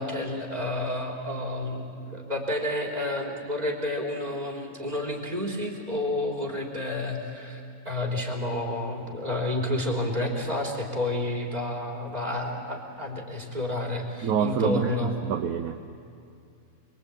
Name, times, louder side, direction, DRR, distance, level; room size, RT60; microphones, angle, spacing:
voice 1, 0.0-15.1, left 1 dB, 25° right, -1 dB, 3.6 m, -30 dB
voice 2, 14.2-15.8, right 7 dB, 70° right, 6 dB, 1.2 m, -27 dB
28.0 x 22.5 x 8.6 m, 2.5 s
omnidirectional pair, 1.6 m